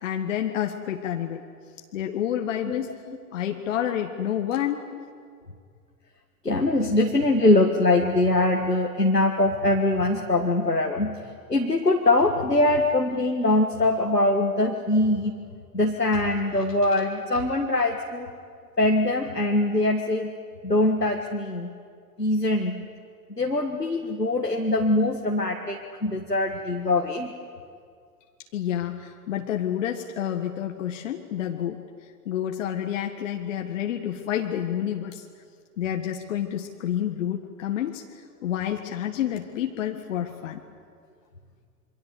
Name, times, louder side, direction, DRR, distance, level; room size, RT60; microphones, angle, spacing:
voice 1, 0.0-1.4 1.9-4.9 28.5-31.8 32.3-35.3 35.8-40.6, left 10 dB, 50° left, 4 dB, 1.8 m, -29 dB
voice 2, 6.4-11.2 11.5-15.3 15.7-18.3 18.8-20.3 20.6-21.7 22.2-22.8 23.3-27.3, left 2 dB, 90° left, 2 dB, 1.9 m, -22 dB
27.0 x 24.5 x 8.3 m, 2.2 s
figure-of-eight pair, 100°, 47 cm